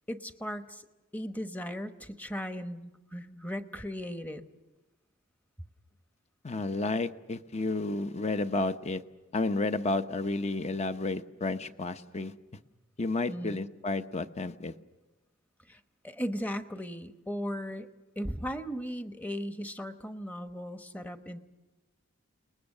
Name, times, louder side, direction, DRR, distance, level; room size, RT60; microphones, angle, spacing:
voice 1, 0.1-0.8 1.1-4.4 13.3-13.7 15.7-17.9 18.2-21.4, equal, 10° left, 8 dB, 1.0 m, -37 dB
voice 2, 6.4-9.0 9.3-12.3 13.0-14.7, left 2 dB, 35° left, 10 dB, 0.8 m, -31 dB
30.0 x 20.5 x 6.6 m, 1.1 s
head